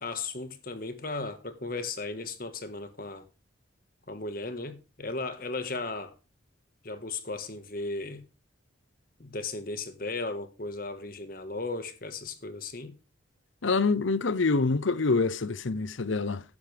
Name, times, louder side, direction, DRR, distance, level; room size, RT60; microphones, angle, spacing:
voice 1, 0.0-3.3 4.1-6.2 6.8-8.2 9.2-12.9, left 3 dB, 45° left, 1.6 m, -36 dB
voice 2, 13.6-16.4, left 3 dB, 75° left, 0.8 m, -26 dB
13.5 x 10.5 x 3.5 m
head